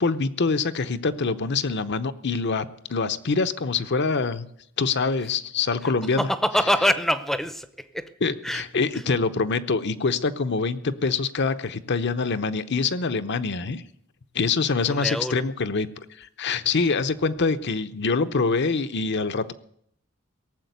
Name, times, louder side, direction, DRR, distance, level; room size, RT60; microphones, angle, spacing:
voice 1, 0.0-4.5 4.8-6.3 8.2-13.8 14.3-15.9 16.2-19.5, left 4 dB, 55° left, 10 dB, 0.8 m, -25 dB
voice 2, 6.2-8.1 8.4-8.6 14.9-15.4, equal, ahead, 12 dB, 0.7 m, -24 dB
18.0 x 7.5 x 9.3 m, 0.70 s
head